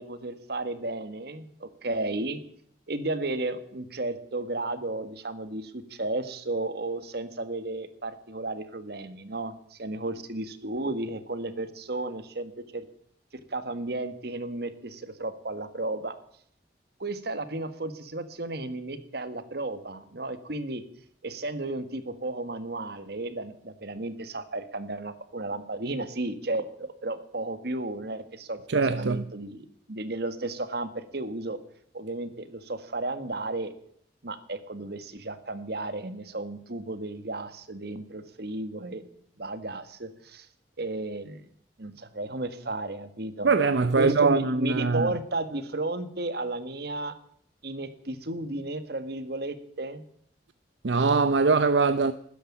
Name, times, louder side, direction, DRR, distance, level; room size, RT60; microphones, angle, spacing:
voice 1, 0.0-2.4 2.9-12.9 13.5-16.1 17.0-20.8 21.2-31.6 31.9-33.7 34.2-39.0 39.4-40.5 40.8-41.5 41.8-43.5 43.9-47.2 47.6-50.0, right 2 dB, 60° right, 1.6 m, -33 dB
voice 2, 28.7-29.2 43.4-45.1 50.8-52.1, right 4 dB, 80° right, 0.7 m, -22 dB
13.5 x 10.0 x 9.9 m
head